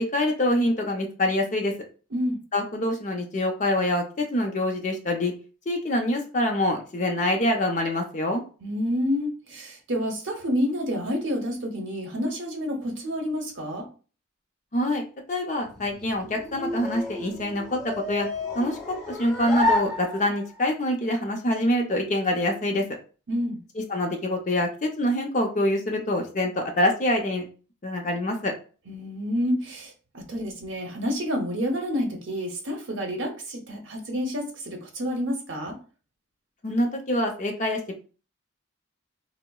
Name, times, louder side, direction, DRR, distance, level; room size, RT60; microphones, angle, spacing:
voice 1, 0.0-1.7 2.5-5.3 5.7-8.4 14.7-17.8 18.1-18.3 18.5-18.8 19.1-22.8 23.8-27.4 27.8-28.5 36.6-38.0, left 1 dB, 35° left, 2 dB, 0.5 m, -25 dB
voice 2, 8.6-13.9 23.3-23.6 28.9-35.8, equal, 65° right, 2 dB, 0.7 m, -29 dB
sound 1, 15.7-20.6, left 2 dB, ahead, 0.8 m, -31 dB
3.7 x 2.0 x 2.2 m, 0.37 s
head